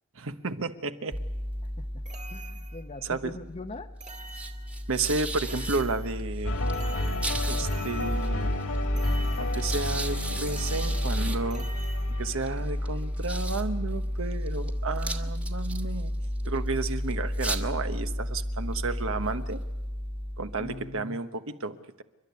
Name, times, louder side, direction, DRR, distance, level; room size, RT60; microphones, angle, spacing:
voice 1, 0.2-1.2 3.0-3.4 4.9-6.6 7.5-8.6 9.4-11.7 12.2-16.1 16.4-19.6 20.4-22.0, right 3 dB, 65° right, 9 dB, 1.2 m, -32 dB
sound 1, 1.1-21.0, equal, 5° right, 1.4 m, -32 dB
sound 2, 2.1-3.0 4.0-5.0 5.4-6.4 6.7-8.6 9.0-9.9 10.5-12.5, right 4 dB, 35° right, 1.6 m, -47 dB
voice 2, 2.3-3.9 20.6-21.2, left 2 dB, 30° left, 3 dB, 0.8 m, -41 dB
sound 3, 6.4-14.6, left 1 dB, 65° left, 2.0 m, -33 dB
29.0 x 12.0 x 9.5 m, 1.0 s
head